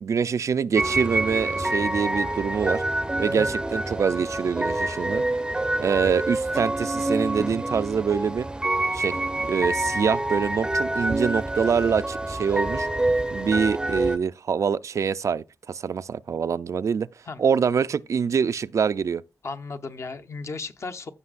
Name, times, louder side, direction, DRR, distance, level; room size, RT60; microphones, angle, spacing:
voice 1, 0.0-2.8 3.2-5.2 5.8-8.5 8.9-9.2 9.5-12.9 13.3-17.1 17.4-19.2, right 6 dB, 60° right, 0.4 m, -25 dB
sound 1, 0.8-14.2, right 2 dB, 15° right, 0.5 m, -27 dB
voice 2, 3.3-3.6 17.3-17.4 19.4-21.1, left 4 dB, 55° left, 0.9 m, -35 dB
15.0 x 6.1 x 2.5 m
wide cardioid pair, 115°, 6 cm